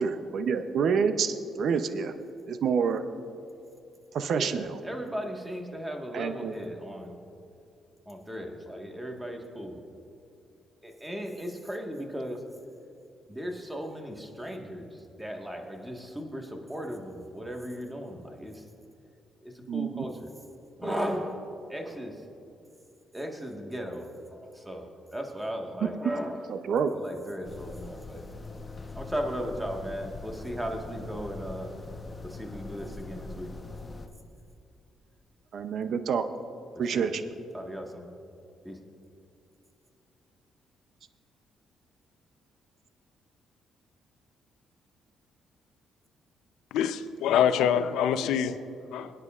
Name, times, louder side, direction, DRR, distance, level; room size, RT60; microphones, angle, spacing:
voice 1, 0.0-2.1 2.5-3.0 4.1-4.8 6.1-6.5 19.7-20.0 26.5-26.9 35.5-36.2 36.8-37.2, right 6 dB, 65° right, 0.6 m, -28 dB
voice 2, 4.3-7.2 8.1-9.8 10.8-12.6 13.3-18.7 19.4-20.3 20.8-22.2 23.1-26.5 26.9-28.2 28.9-31.7 32.2-33.5 36.9-37.1 37.5-38.1 38.6-38.8, equal, 10° right, 1.5 m, -36 dB
sound 1, 27.4-34.1, left 3 dB, 25° left, 1.0 m, -42 dB
voice 3, 46.7-48.6 48.9-49.1, left 8 dB, 90° left, 0.5 m, -25 dB
23.0 x 9.8 x 2.5 m
cardioid pair, 90°, 0 cm